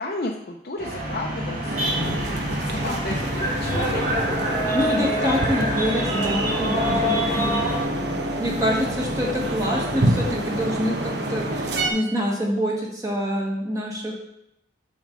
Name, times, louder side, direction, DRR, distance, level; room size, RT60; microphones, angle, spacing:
voice 1, 0.0-5.4 7.1-8.1 8.6-8.7, left 2 dB, 55° left, -1 dB, 0.6 m, -34 dB
sound 1, 0.8-7.8, equal, 45° right, 2.3 m, -26 dB
sound 2, 1.7-11.9, right 1 dB, 65° right, 1.0 m, -27 dB
voice 2, 4.7-7.7 8.4-14.2, equal, 20° right, -2 dB, 1.4 m, -26 dB
8.3 x 6.4 x 3.9 m, 0.82 s
head